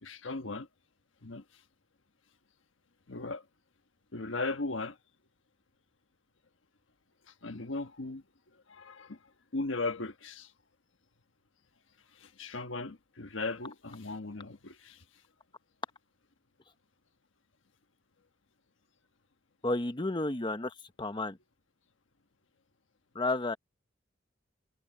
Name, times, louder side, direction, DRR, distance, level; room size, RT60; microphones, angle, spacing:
voice 1, 0.0-0.7 1.2-1.4 3.1-3.4 4.1-5.0 7.4-8.2 8.7-9.2 9.5-10.5 12.2-15.0, left 3 dB, 90° left, 1.3 m, -37 dB
voice 2, 19.6-21.4 23.1-23.6, left 2 dB, 25° left, 0.9 m, -32 dB
head